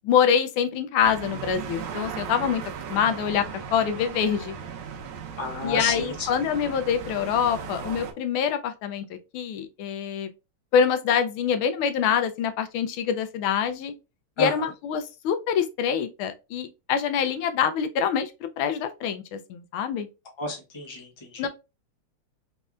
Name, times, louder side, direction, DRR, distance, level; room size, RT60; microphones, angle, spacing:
voice 1, 0.0-2.6 2.9-3.5 3.7-4.5 5.6-10.3 10.7-13.9 14.4-18.3 18.6-20.1 21.4-21.5, left 7 dB, 80° left, 1.4 m, -25 dB
sound 1, 1.0-8.1, right 7 dB, 75° right, 1.5 m, -37 dB
voice 2, 5.4-6.3 14.4-14.5 20.4-21.5, left 2 dB, 30° left, 0.5 m, -31 dB
4.2 x 3.2 x 2.3 m
omnidirectional pair, 2.3 m